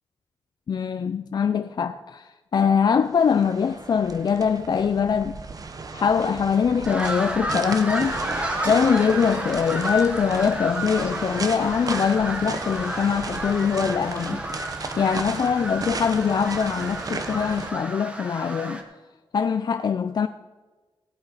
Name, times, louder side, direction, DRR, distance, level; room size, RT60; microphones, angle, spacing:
voice 1, 0.7-5.4 5.9-8.2 8.6-14.4 15.0-18.8 19.3-20.3, left 6 dB, 55° left, 0.4 m, -23 dB
sound 1, 3.1-17.7, right 4 dB, 45° right, 0.9 m, -35 dB
sound 2, 6.8-18.8, equal, 15° right, 1.4 m, -32 dB
16.5 x 8.3 x 4.9 m
wide cardioid pair, 125°, 9 cm